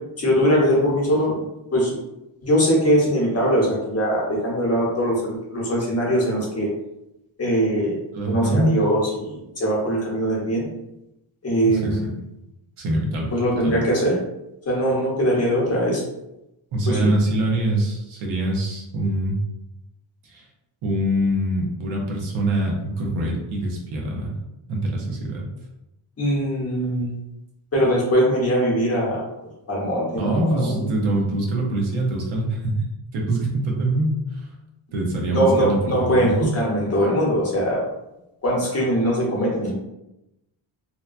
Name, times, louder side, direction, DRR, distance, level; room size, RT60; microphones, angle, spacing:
voice 1, 0.2-1.4 1.7-1.9 2.4-6.7 7.4-8.0 8.3-10.7 11.4-12.0 13.3-14.1 14.7-16.0 16.9-17.1 26.2-27.1 27.7-29.2 29.7-30.9 35.3-37.8 38.4-39.7, equal, 30° left, -3 dB, 0.9 m, -21 dB
voice 2, 8.1-8.7 11.6-12.1 12.8-13.3 13.6-13.9 16.7-19.4 20.2-20.4 20.8-24.3 24.7-25.4 30.2-32.8 33.1-34.4 34.9-36.5, right 1 dB, 85° right, -1 dB, 0.8 m, -24 dB
2.9 x 2.2 x 2.4 m, 0.89 s
wide cardioid pair, 120°, 49 cm